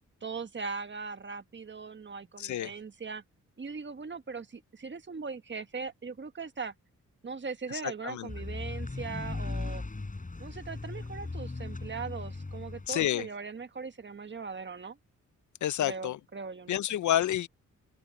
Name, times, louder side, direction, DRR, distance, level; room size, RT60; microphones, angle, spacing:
voice 1, 0.2-3.2 3.6-6.7 7.2-9.8 10.4-15.0 15.8-16.8, right 5 dB, 35° right, 1.5 m, -40 dB
voice 2, 2.4-2.7 7.8-8.3 12.9-13.3 15.6-16.2 16.7-17.5, left 12 dB, 65° left, 0.6 m, -29 dB
sound 1, 8.3-12.9, left 3 dB, 25° left, 5.3 m, -37 dB
open air
cardioid pair, 65°, 32 cm